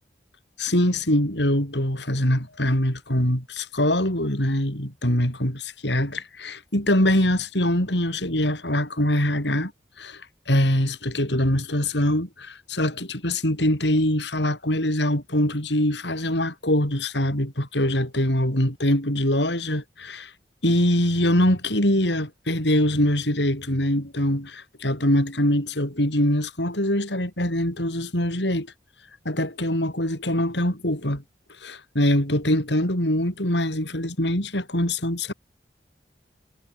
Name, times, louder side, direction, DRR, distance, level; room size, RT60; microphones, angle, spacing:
voice 1, 0.6-9.7 10.0-10.2 10.5-20.3 20.6-28.7 29.2-31.2 31.6-35.3, left 1 dB, 80° left, 7.9 m, -23 dB
head